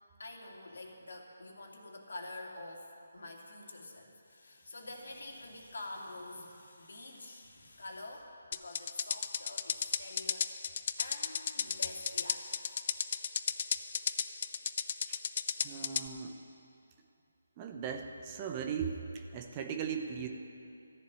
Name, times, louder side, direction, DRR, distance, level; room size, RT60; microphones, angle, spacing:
voice 1, 0.2-12.9, left 2 dB, 70° left, 0 dB, 2.6 m, -47 dB
sound 1, 8.5-16.1, left 7 dB, 40° left, 0.5 m, -34 dB
voice 2, 15.6-16.4 17.6-20.3, right 7 dB, 25° right, 4 dB, 0.9 m, -38 dB
13.5 x 7.4 x 9.7 m, 2.6 s
figure-of-eight pair, 155°, 0 cm